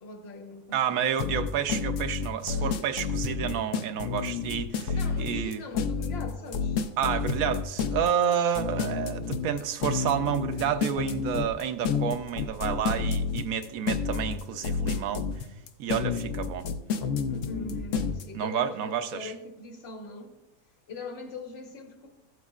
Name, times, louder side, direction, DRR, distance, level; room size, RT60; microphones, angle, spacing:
voice 1, 0.0-1.0 2.5-2.8 3.2-3.6 4.9-6.8 17.3-20.3 20.9-22.1, left 2 dB, 45° left, 1.3 m, -41 dB
voice 2, 0.7-5.6 7.0-15.3 15.8-16.7 18.3-19.3, right 8 dB, 70° right, 1.1 m, -30 dB
sound 1, 1.2-18.2, left 5 dB, 65° left, 1.0 m, -30 dB
15.0 x 8.1 x 2.4 m
omnidirectional pair, 1.5 m